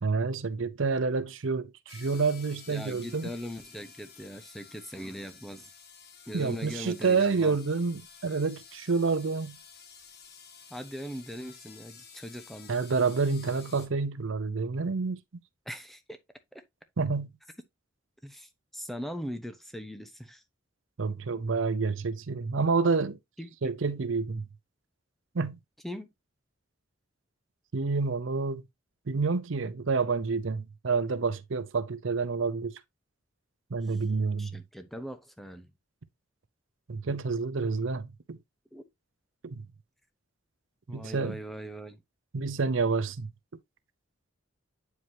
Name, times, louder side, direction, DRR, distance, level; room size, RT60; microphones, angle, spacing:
voice 1, 0.0-3.3 6.3-9.6 12.7-15.2 17.0-17.3 21.0-23.2 23.6-24.4 25.3-25.6 27.7-28.6 29.1-32.8 33.7-34.6 36.9-38.4 39.4-39.6 40.9-41.4 42.3-43.3, right 4 dB, 70° right, 0.7 m, -28 dB
sound 1, 1.9-13.9, left 6 dB, 55° left, 1.4 m, -52 dB
voice 2, 2.7-5.7 6.3-7.6 10.7-12.8 15.7-16.2 18.2-20.4 23.4-23.7 25.8-26.1 34.4-35.7 38.7-38.8 40.9-42.0, equal, ahead, 0.9 m, -40 dB
9.2 x 4.8 x 2.7 m
head